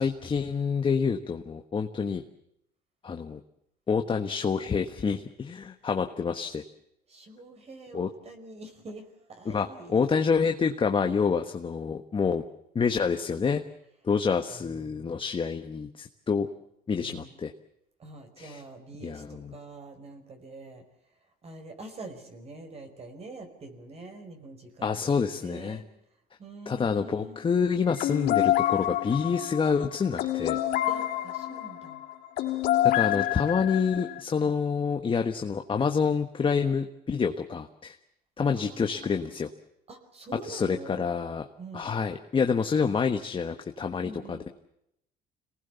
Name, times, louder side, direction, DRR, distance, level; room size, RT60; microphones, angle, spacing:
voice 1, 0.0-2.2 3.0-3.4 3.9-6.6 7.9-8.1 9.4-12.4 12.7-13.6 14.0-16.5 16.9-17.5 18.4-18.6 19.0-19.5 24.8-25.8 26.7-30.6 32.8-38.0 38.4-39.5 40.5-41.4 41.7-44.5, left 5 dB, 30° left, 6 dB, 1.4 m, -27 dB
voice 2, 7.1-10.2 14.5-15.2 17.0-17.4 18.0-20.8 21.2-25.9 26.4-27.4 30.9-32.0 38.5-39.3 39.9-41.1 41.6-41.9 44.0-44.5, right 2 dB, 40° right, 5 dB, 5.2 m, -45 dB
sound 1, 28.0-34.2, left 13 dB, 80° left, 3.5 m, -27 dB
26.5 x 19.5 x 7.1 m, 0.79 s
cardioid pair, 110°, 17 cm